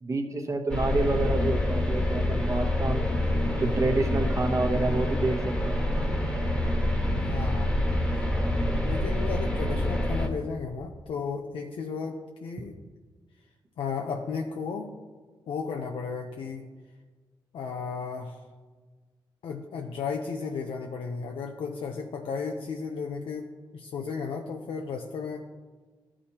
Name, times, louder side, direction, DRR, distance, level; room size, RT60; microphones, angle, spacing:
voice 1, 0.0-3.0 3.6-5.9, right 2 dB, 35° right, 3 dB, 0.9 m, -28 dB
sound 1, 0.7-10.3, left 1 dB, 10° left, 1.2 m, -26 dB
voice 2, 7.2-7.7 8.1-8.2 8.8-12.8 13.8-14.9 15.5-16.6 17.5-18.4 19.4-23.5 23.7-25.4, left 5 dB, 85° left, 2 dB, 0.5 m, -34 dB
13.0 x 4.8 x 2.9 m, 1.4 s
cardioid pair, 100°, 9 cm